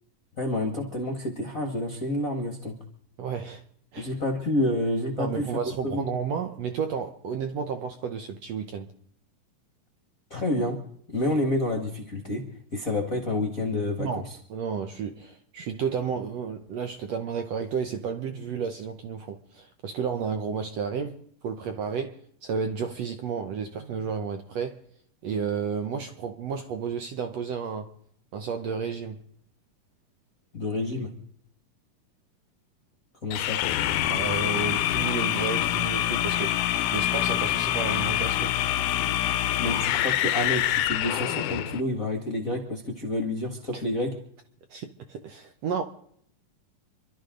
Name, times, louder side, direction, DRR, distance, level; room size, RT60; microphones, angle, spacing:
voice 1, 0.4-2.7 4.0-5.5 5.8-6.1 10.3-10.8 11.1-12.4 12.7-14.4 30.5-31.1 33.2-33.6 39.6-44.1, left 1 dB, 45° left, 1.1 m, -29 dB
voice 2, 3.2-3.6 3.9-4.2 5.2-8.9 14.0-24.8 25.2-27.9 28.3-29.2 34.1-38.5 43.7-43.8 44.7-45.8, right 6 dB, 80° right, 1.4 m, -32 dB
sound 1, 33.3-41.8, left 12 dB, 75° left, 1.9 m, -26 dB
27.5 x 12.5 x 3.8 m
omnidirectional pair, 4.4 m